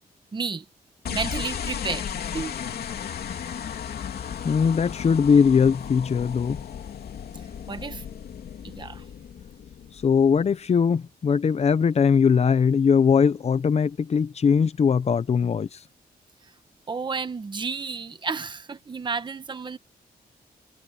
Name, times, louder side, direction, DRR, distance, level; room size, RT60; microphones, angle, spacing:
voice 1, 0.3-0.6 1.1-2.1 2.3-2.5 7.7-8.0 8.6-9.0 16.4-16.5 16.9-19.8, right 5 dB, 30° right, 1.1 m, -31 dB
sound 1, 1.1-10.4, left 8 dB, 70° left, 2.9 m, -35 dB
voice 2, 4.4-6.6 10.0-15.7, left 6 dB, 40° left, 0.8 m, -20 dB
wide cardioid pair, 145°, 17 cm